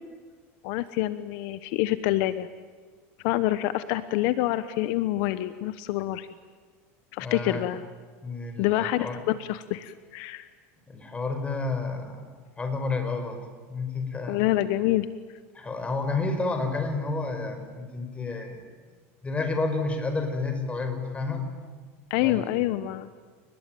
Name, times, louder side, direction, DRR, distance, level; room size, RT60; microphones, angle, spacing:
voice 1, 0.6-2.5 3.2-6.3 7.1-7.8 8.6-10.5 14.3-15.1 22.1-23.1, left 15 dB, 65° left, 13 dB, 1.1 m, -26 dB
voice 2, 7.2-7.7 8.2-9.2 10.9-12.3 12.6-13.4 13.7-14.4 15.5-18.6 19.2-21.4 22.2-22.5, left 3 dB, 15° left, 6 dB, 5.4 m, -30 dB
29.5 x 20.5 x 9.3 m, 1.6 s
supercardioid pair, 120°, 7 cm